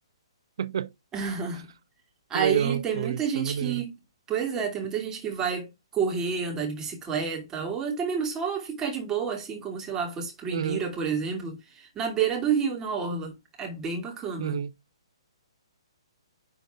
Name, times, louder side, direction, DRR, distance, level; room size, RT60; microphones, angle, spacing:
voice 1, 0.6-0.9 2.3-3.9 10.5-10.9 14.4-14.7, right 8 dB, 60° right, 0.7 m, -29 dB
voice 2, 1.1-1.7 2.3-3.9 4.3-14.6, right 6 dB, 15° right, 2.7 m, -30 dB
10.0 x 4.0 x 3.6 m
figure-of-eight pair, 130°, 3 cm